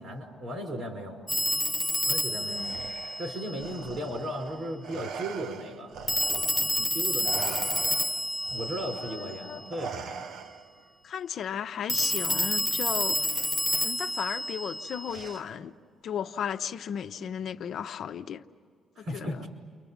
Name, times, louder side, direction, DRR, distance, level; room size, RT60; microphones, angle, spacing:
voice 1, 0.0-1.3 2.1-2.8 3.2-5.9 6.3-8.0 8.5-10.2 19.0-19.4, equal, 60° right, 4 dB, 5.4 m, -36 dB
Telephone, 1.3-3.9 6.1-9.7 11.9-15.4, left 1 dB, ahead, 0.6 m, -29 dB
voice 2, 2.3-2.8 9.1-9.6 11.0-13.3 13.8-15.7 16.0-18.4 19.0-19.4, left 8 dB, 70° left, 8 dB, 0.8 m, -35 dB
Respiratory sounds, 2.5-6.9 7.2-10.9 12.1-12.3 13.3-13.9 15.1-15.7, right 6 dB, 80° right, 0.7 m, -42 dB
29.5 x 24.5 x 7.3 m, 2.1 s
cardioid pair, 110°, 0 cm